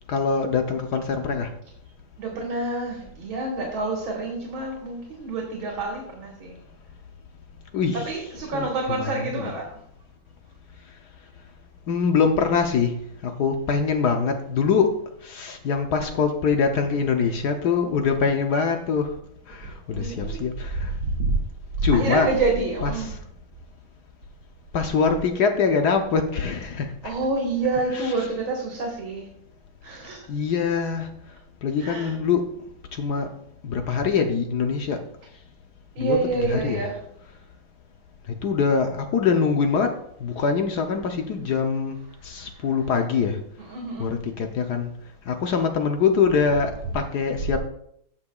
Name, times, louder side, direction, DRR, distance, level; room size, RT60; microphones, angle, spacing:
voice 1, 0.1-1.5 7.7-8.1 8.5-9.5 11.9-12.9 13.2-15.0 15.2-19.1 19.5-20.9 21.8-22.3 22.8-23.2 24.7-27.1 27.9-28.1 30.3-31.1 31.6-32.4 32.9-33.3 33.6-35.0 36.0-36.8 38.4-42.0 42.2-43.4 44.0-44.9 45.3-47.6, left 5 dB, 65° left, 5 dB, 1.2 m, -24 dB
voice 2, 2.2-6.6 8.1-9.7 19.9-20.4 21.2-21.3 21.8-23.1 27.0-29.3 29.8-30.2 31.8-32.1 36.0-37.0 42.6-42.7 43.7-44.1, right 3 dB, 80° right, -1 dB, 2.4 m, -27 dB
17.0 x 5.8 x 2.3 m, 0.71 s
omnidirectional pair, 2.2 m